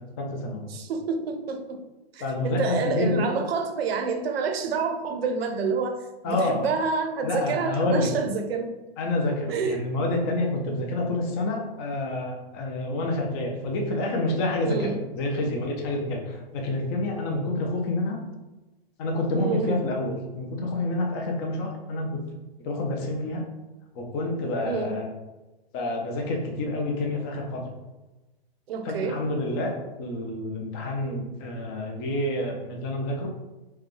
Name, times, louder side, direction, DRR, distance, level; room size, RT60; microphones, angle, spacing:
voice 1, 0.2-0.7 2.2-3.3 6.2-6.7 7.2-8.1 9.0-18.2 19.0-22.2 22.6-23.4 23.9-25.1 25.7-27.6 28.8-29.7 30.0-33.3, left 2 dB, 25° left, 1 dB, 0.5 m, -28 dB
voice 2, 0.7-1.8 2.1-8.7 9.5-9.8 14.6-15.0 19.3-19.8 24.6-25.0 28.7-29.2, right 5 dB, 70° right, 6 dB, 0.7 m, -28 dB
4.7 x 2.3 x 3.0 m, 1.1 s
hypercardioid pair, 145°, 31 cm